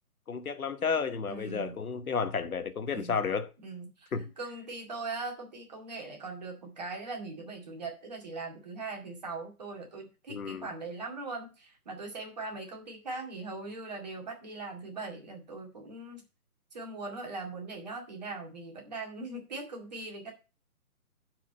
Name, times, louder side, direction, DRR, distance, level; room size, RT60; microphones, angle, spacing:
voice 1, 0.3-3.5 4.1-4.3 10.3-10.7, left 5 dB, 70° left, 1.2 m, -32 dB
voice 2, 1.3-1.8 2.9-3.2 3.6-16.2 16.7-20.3, right 3 dB, 25° right, 2.2 m, -40 dB
11.0 x 5.0 x 5.2 m
hypercardioid pair, 180°, 45 cm